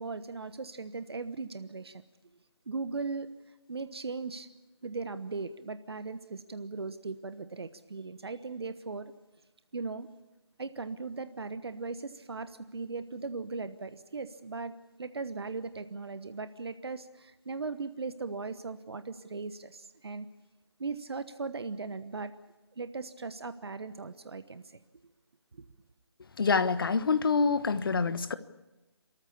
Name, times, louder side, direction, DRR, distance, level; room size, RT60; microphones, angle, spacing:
voice 1, 0.0-2.0 2.7-3.3 3.7-4.5 4.8-9.1 9.7-10.1 10.6-14.7 15.0-20.3 20.8-22.3 22.8-24.8 25.5-25.6, right 4 dB, 60° right, 12 dB, 1.2 m, -38 dB
voice 2, 26.4-28.3, left 4 dB, 50° left, 12 dB, 1.3 m, -26 dB
29.0 x 14.0 x 8.5 m, 1.1 s
figure-of-eight pair, 155°, 15 cm